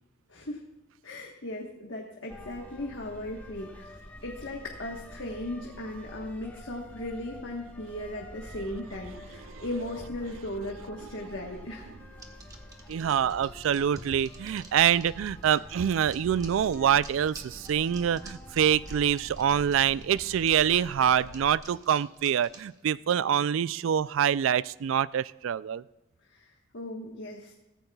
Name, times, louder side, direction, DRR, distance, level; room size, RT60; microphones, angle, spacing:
voice 1, 0.3-0.6 1.0-11.9 26.3-27.5, left 1 dB, 65° left, 0 dB, 1.3 m, -37 dB
sound 1, 2.3-21.6, equal, 10° left, 1.2 m, -46 dB
sound 2, 12.2-22.8, right 2 dB, 20° right, 1.2 m, -50 dB
voice 2, 12.9-25.8, right 9 dB, 80° right, 19 dB, 0.3 m, -25 dB
15.5 x 14.5 x 2.3 m, 1.0 s
head